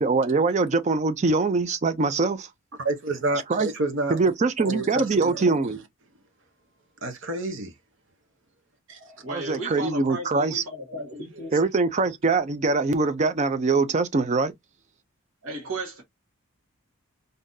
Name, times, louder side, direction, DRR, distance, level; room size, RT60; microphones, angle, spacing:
voice 1, 0.0-2.5 3.5-3.7 4.1-5.8 9.3-10.6 11.5-14.5, right 3 dB, 30° right, 0.4 m, -23 dB
voice 2, 2.8-4.3 4.6-5.8 7.0-7.7 8.9-9.0, right 2 dB, 55° right, 0.8 m, -29 dB
voice 3, 9.0-11.6 15.4-16.0, right 1 dB, 75° right, 1.3 m, -35 dB
3.7 x 2.7 x 2.6 m
head